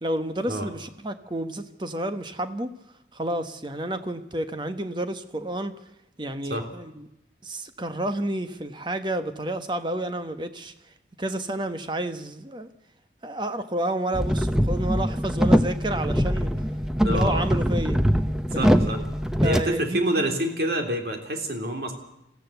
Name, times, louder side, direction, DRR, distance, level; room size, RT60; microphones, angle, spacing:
voice 1, 0.0-2.7 3.1-5.7 6.2-7.1 7.4-10.7 11.2-12.7 13.2-16.5 17.1-18.0 18.5-19.0 19.4-20.4, right 1 dB, 25° right, 9 dB, 1.2 m, -30 dB
sound 1, 14.1-19.6, equal, 5° right, 0.8 m, -23 dB
voice 2, 17.0-17.4 18.6-19.0 19.4-21.9, right 1 dB, 60° right, 4 dB, 3.3 m, -27 dB
21.0 x 15.0 x 8.1 m, 0.87 s
head